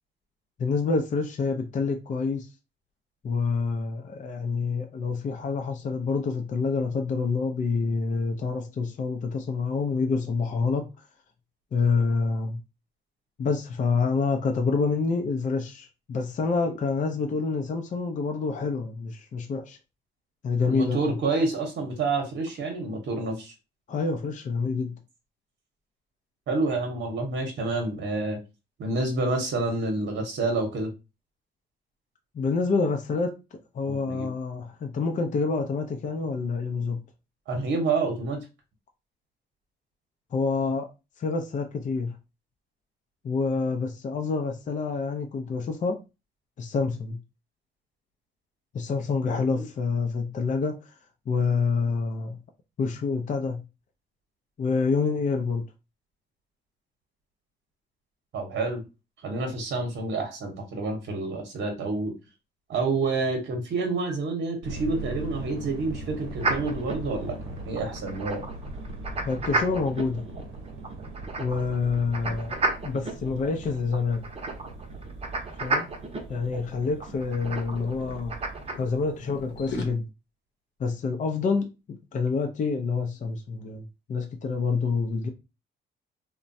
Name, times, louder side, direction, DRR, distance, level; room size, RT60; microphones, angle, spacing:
voice 1, 0.6-2.5 3.2-10.9 11.7-12.6 13.4-19.8 20.4-21.2 23.9-25.0 32.3-37.0 40.3-40.9 41.2-42.2 43.2-46.0 46.6-47.2 48.7-50.8 51.3-52.4 52.8-53.6 54.6-55.7 69.2-70.2 71.4-74.3 75.6-75.9 76.3-78.3 78.8-80.1 80.8-85.3, left 4 dB, 40° left, 0.5 m, -27 dB
voice 2, 20.7-23.5 26.5-28.4 28.8-30.9 33.9-34.3 37.5-38.4 49.4-49.6 58.3-58.8 59.2-62.1 62.7-67.3 67.7-68.4, right 3 dB, 65° right, 0.9 m, -28 dB
sound 1, 64.6-79.9, right 2 dB, 80° right, 0.7 m, -41 dB
sound 2, 66.4-78.7, right 3 dB, 30° right, 0.7 m, -33 dB
sound 3, 72.1-72.4 72.8-73.0 73.3-75.2 75.9-76.2 76.4-78.2 78.7-79.9, left 3 dB, 60° left, 0.9 m, -40 dB
3.0 x 2.2 x 2.6 m
cardioid pair, 90°, 20 cm